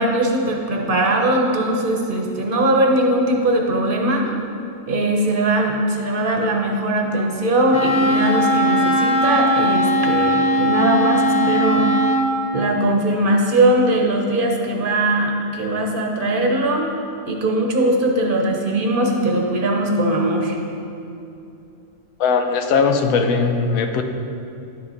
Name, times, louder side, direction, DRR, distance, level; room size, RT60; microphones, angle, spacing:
voice 1, 0.0-4.3 4.9-11.9 12.5-16.9 17.3-20.6, right 1 dB, 45° right, 1 dB, 0.9 m, -20 dB
Wind instrument woodwind instrument, 7.7-12.3, equal, 40° left, 1.0 m, -18 dB
voice 2, 22.2-24.0, left 5 dB, 90° left, 6 dB, 1.1 m, -19 dB
10.5 x 5.8 x 4.1 m, 2.7 s
omnidirectional pair, 1.4 m